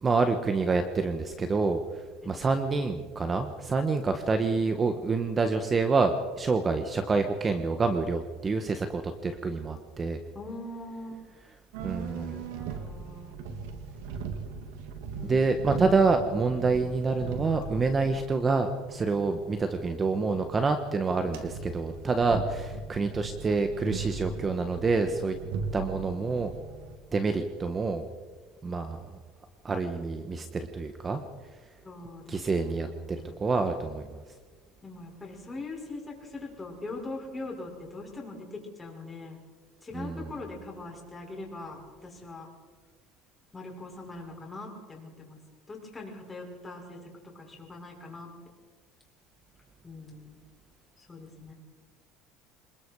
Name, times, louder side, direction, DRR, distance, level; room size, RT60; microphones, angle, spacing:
voice 1, 0.0-10.2 11.8-12.4 15.2-25.3 25.7-26.5 27.1-28.0 28.6-29.0 29.6-31.2 32.3-34.2 39.9-40.3, right 4 dB, 25° right, 7 dB, 1.5 m, -27 dB
voice 2, 10.3-11.3 12.1-13.4 15.2-16.9 31.8-33.5 34.8-39.4 39.8-42.5 43.5-45.4 45.7-47.0 47.3-48.3 49.8-50.4 51.0-51.5, left 2 dB, 15° left, -1 dB, 6.9 m, -42 dB
sound 1, 11.7-27.0, right 5 dB, 85° right, 2.9 m, -39 dB
27.5 x 20.5 x 4.9 m, 1.4 s
supercardioid pair, 120°, 0 cm